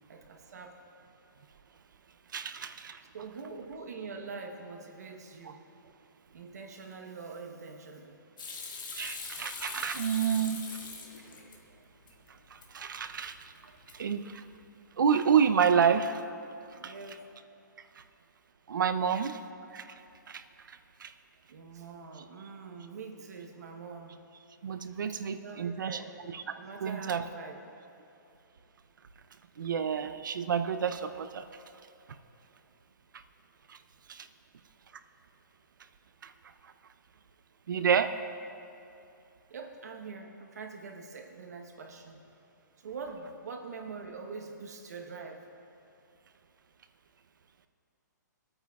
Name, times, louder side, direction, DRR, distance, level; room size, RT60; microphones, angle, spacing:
voice 1, 0.1-0.8 3.1-5.6 6.3-8.2 16.8-17.3 21.5-24.1 25.1-26.2 26.6-27.6 39.5-42.2 42.8-45.5, right 4 dB, 55° right, 2 dB, 1.0 m, -44 dB
voice 2, 2.3-3.0 9.0-10.6 12.7-13.4 13.9-14.4 15.0-16.2 16.8-16.9 18.7-19.4 19.7-19.8 20.3-20.4 21.0-21.1 24.6-26.0 26.3-26.4 26.8-27.2 29.6-31.4 34.1-34.3 36.2-36.3 37.7-38.1, right 7 dB, 85° right, 9 dB, 0.5 m, -28 dB
Hands / Sink (filling or washing), 8.4-11.6 11.9-12.7 13.0-13.5 13.8-14.2, left 4 dB, 85° left, 1.8 m, -42 dB
19.5 x 8.8 x 2.3 m, 2.8 s
hypercardioid pair, 175°, 10 cm